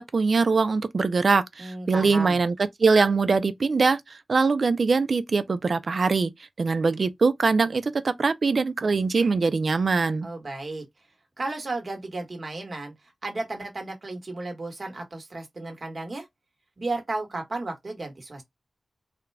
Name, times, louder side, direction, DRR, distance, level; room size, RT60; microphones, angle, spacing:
voice 1, 0.1-6.3 6.6-10.3, right 4 dB, 55° right, 0.4 m, -22 dB
voice 2, 1.6-2.4 10.2-10.8 11.4-12.9 13.2-16.2 16.8-18.4, right 2 dB, 40° right, 1.3 m, -33 dB
3.7 x 2.2 x 3.3 m
wide cardioid pair, 115°, 0 cm